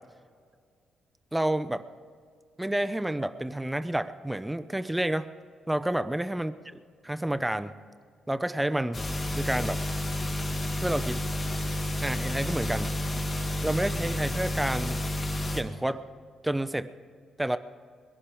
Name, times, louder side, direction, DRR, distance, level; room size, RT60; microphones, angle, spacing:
voice 1, 1.3-1.8 2.6-5.3 5.7-6.5 7.0-7.9 8.3-9.0 9.4-9.8 10.7-11.2 12.0-12.9 13.6-15.0 15.5-16.0 16.4-16.9 17.4-17.6, right 1 dB, 10° right, 12 dB, 0.7 m, -29 dB
sound 1, 8.9-15.6, left 1 dB, 35° left, 2.6 m, -30 dB
21.5 x 11.0 x 5.0 m, 2.1 s
supercardioid pair, 60°, 0 cm